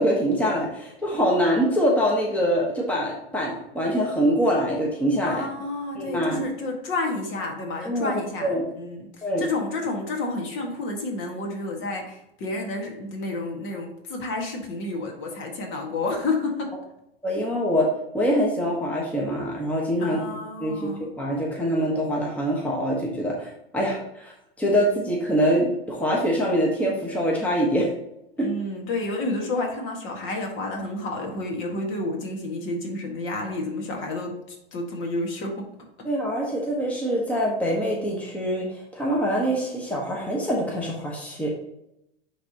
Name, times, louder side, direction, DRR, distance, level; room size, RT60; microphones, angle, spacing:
voice 1, 0.0-5.4 5.9-6.5 7.8-8.1 8.4-8.6 9.2-9.4 17.2-17.9 18.1-20.2 20.6-20.9 21.2-27.9 28.4-28.5 36.0-41.5, equal, 5° left, -3 dB, 1.2 m, -24 dB
voice 2, 5.2-16.7 20.0-21.1 28.4-35.6, left 2 dB, 40° left, 2 dB, 1.7 m, -30 dB
10.0 x 3.4 x 2.8 m, 0.83 s
hypercardioid pair, 110°, 31 cm